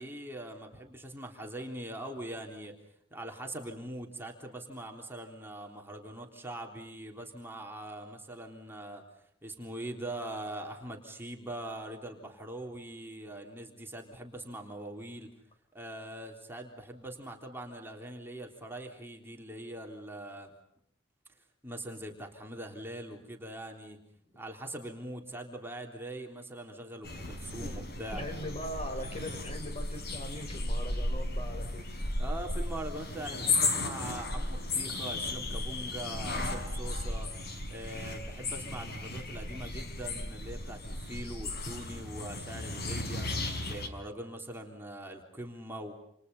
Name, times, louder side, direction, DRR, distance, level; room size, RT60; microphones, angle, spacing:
voice 1, 0.0-2.7 3.1-9.0 9.4-15.3 15.7-20.5 21.6-24.0 24.4-28.2 32.2-37.3 37.7-43.3 43.6-45.9, right 1 dB, 10° right, 1 dB, 3.5 m, -42 dB
sound 1, 27.0-43.9, left 2 dB, 55° left, 4.8 m, -35 dB
voice 2, 28.1-31.9, left 1 dB, 35° left, 6 dB, 4.9 m, -41 dB
29.0 x 29.0 x 5.6 m, 0.72 s
head